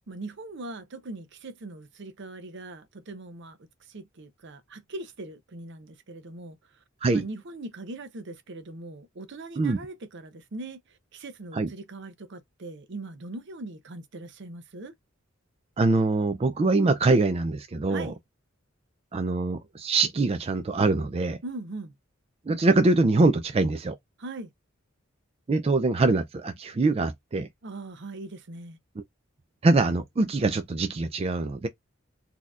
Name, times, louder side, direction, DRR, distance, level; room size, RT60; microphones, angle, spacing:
voice 1, 0.1-3.6 3.9-6.6 7.1-10.8 11.1-14.9 17.9-18.2 21.4-21.9 24.2-24.5 27.6-28.8, right 2 dB, 60° right, 0.7 m, -40 dB
voice 2, 15.8-18.1 19.1-21.4 22.5-24.0 25.5-27.5 29.6-31.7, right 3 dB, 30° right, 0.4 m, -23 dB
4.2 x 2.8 x 2.4 m
head